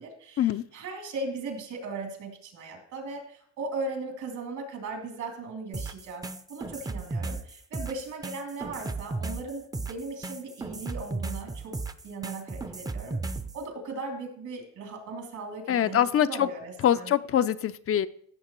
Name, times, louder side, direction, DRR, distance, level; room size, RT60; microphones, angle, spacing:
voice 1, 0.0-11.7 12.0-13.2 13.5-17.1, right 3 dB, 75° right, 2.9 m, -38 dB
sound 1, 5.7-13.6, right 3 dB, 10° right, 0.5 m, -35 dB
voice 2, 15.7-16.5 16.8-18.1, left 10 dB, 50° left, 0.4 m, -24 dB
15.0 x 6.7 x 3.0 m
cardioid pair, 90°, 30 cm